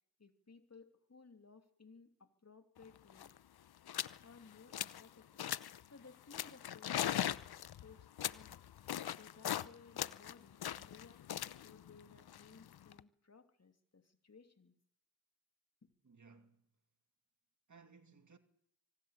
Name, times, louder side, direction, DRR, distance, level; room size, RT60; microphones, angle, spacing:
voice 1, 0.2-3.3 4.2-14.7 15.8-15.9, left 4 dB, 35° left, 3.0 m, -61 dB
sound 1, 2.8-2.9 3.1-3.4 3.9-4.2 4.5-5.1 5.4-5.8 6.3-9.7 10.0-13.0, left 11 dB, 60° left, 0.9 m, -40 dB
voice 2, 16.0-16.7 17.7-18.4, right 4 dB, 40° right, 2.6 m, -61 dB
24.5 x 19.0 x 8.3 m
supercardioid pair, 40°, 43 cm